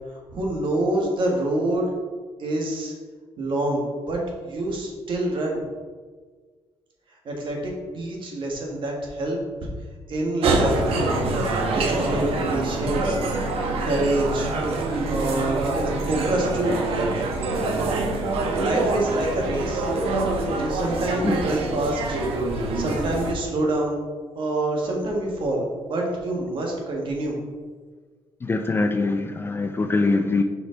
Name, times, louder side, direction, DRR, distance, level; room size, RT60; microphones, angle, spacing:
voice 1, 0.1-1.9 2.4-2.9 3.4-5.6 7.3-9.4 10.1-11.1 11.7-13.2 13.8-14.5 15.1-16.8 18.6-19.9 20.4-22.2 22.7-24.0 24.4-27.4, right 1 dB, 60° right, -1 dB, 1.7 m, -26 dB
sound 1, 10.4-23.3, right 2 dB, 75° right, 1.0 m, -25 dB
voice 2, 28.4-30.4, left 3 dB, 25° left, 7 dB, 0.4 m, -23 dB
5.8 x 5.0 x 3.9 m, 1.5 s
cardioid pair, 110°, 10 cm